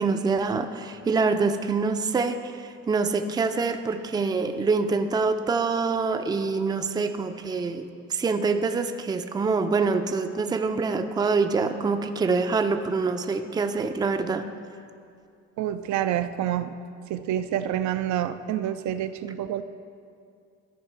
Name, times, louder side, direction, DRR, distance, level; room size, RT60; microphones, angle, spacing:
voice 1, 0.0-14.5, right 4 dB, 15° right, 8 dB, 0.4 m, -25 dB
voice 2, 15.6-16.8 17.1-19.6, right 11 dB, 70° right, 10 dB, 0.5 m, -28 dB
14.0 x 4.9 x 4.6 m, 2.4 s
cardioid pair, 100°, 31 cm